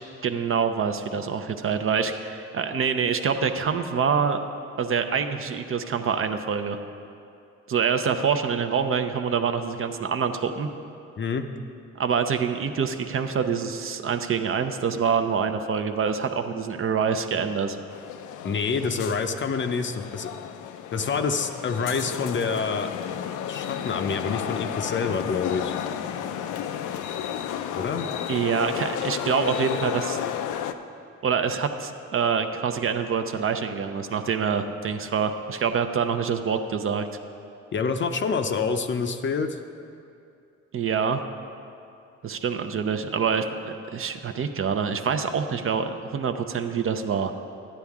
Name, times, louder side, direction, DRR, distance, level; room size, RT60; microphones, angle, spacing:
voice 1, 0.2-4.4 4.8-6.8 7.7-10.7 12.0-17.8 28.3-30.2 31.2-37.1 40.7-41.2 42.2-47.3, right 6 dB, 45° right, 8 dB, 0.6 m, -26 dB
voice 2, 11.2-11.5 18.4-20.3 20.9-22.9 23.5-25.7 27.7-28.1 37.7-39.6, left 5 dB, 40° left, 7 dB, 0.6 m, -27 dB
sound 1, 17.9-30.7, left 9 dB, 80° left, 0.5 m, -32 dB
11.5 x 9.7 x 3.6 m, 2.5 s
cardioid pair, 90°, 30 cm